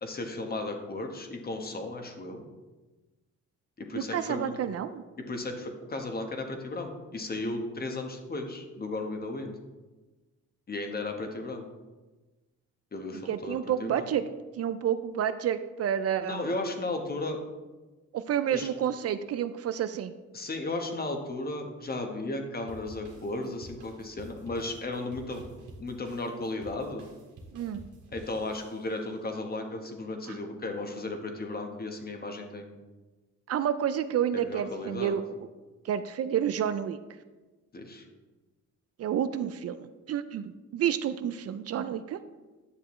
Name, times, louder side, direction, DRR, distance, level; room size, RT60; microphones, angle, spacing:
voice 1, 0.0-2.4 3.8-4.5 5.3-9.6 10.7-11.6 12.9-14.1 16.2-17.4 18.5-18.7 20.3-25.4 25.8-27.0 28.1-32.8 34.3-35.2 37.7-38.0, left 2 dB, 30° left, 4 dB, 1.2 m, -35 dB
voice 2, 3.9-5.0 13.3-14.2 14.6-16.4 18.1-20.1 27.5-27.8 30.3-30.4 33.5-35.2 35.8-37.0 39.0-42.2, right 9 dB, 55° right, 11 dB, 0.4 m, -30 dB
sound 1, 22.7-29.2, right 2 dB, 85° right, 1.9 m, -50 dB
9.8 x 6.6 x 3.1 m, 1.2 s
cardioid pair, 90°, 30 cm